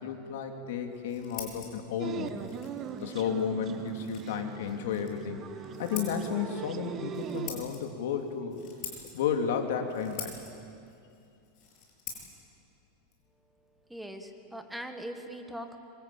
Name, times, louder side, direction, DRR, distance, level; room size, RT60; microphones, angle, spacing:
voice 1, 0.0-2.4 3.0-5.4 5.8-8.6 9.1-10.4, left 7 dB, 75° left, 5 dB, 3.1 m, -32 dB
Scissors, 0.8-14.3, left 7 dB, 40° left, 7.1 m, -47 dB
sound 1, 2.0-7.5, right 8 dB, 30° right, 1.2 m, -40 dB
voice 2, 13.9-15.8, right 1 dB, 5° right, 6 dB, 1.6 m, -41 dB
25.5 x 23.5 x 9.0 m, 2.6 s
supercardioid pair, 145°, 0 cm